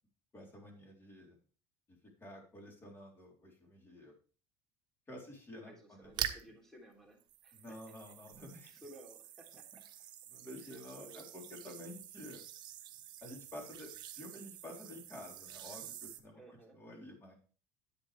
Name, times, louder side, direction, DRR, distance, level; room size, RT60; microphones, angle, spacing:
voice 1, 0.3-1.4 2.2-4.1 5.1-6.1 7.5-8.7 10.3-12.4 13.2-17.3, left 1 dB, 25° left, 0 dB, 3.8 m, -50 dB
voice 2, 5.6-7.8 8.6-9.8 10.6-11.3 16.4-16.8, right 1 dB, 5° left, 0 dB, 3.2 m, -57 dB
sound 1, 6.0-6.6 7.2-16.2, right 11 dB, 50° right, 1.0 m, -46 dB
10.5 x 8.0 x 3.4 m, 0.39 s
cardioid pair, 135°, 10 cm